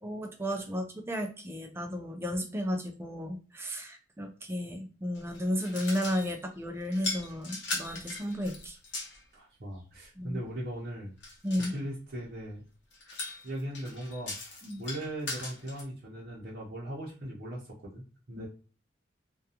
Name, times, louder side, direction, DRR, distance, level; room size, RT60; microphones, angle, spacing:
voice 1, 0.0-8.8 10.2-10.4 11.4-11.7 14.6-14.8 18.4-18.5, equal, 10° right, 4 dB, 0.3 m, -33 dB
sound 1, 5.1-6.4 6.9-9.2 11.2-11.8 12.9-15.8, left 2 dB, 70° left, 0.8 m, -39 dB
voice 2, 9.3-11.1 11.7-12.6 13.4-18.5, right 1 dB, 50° right, -7 dB, 0.7 m, -39 dB
2.4 x 2.2 x 2.7 m, 0.36 s
head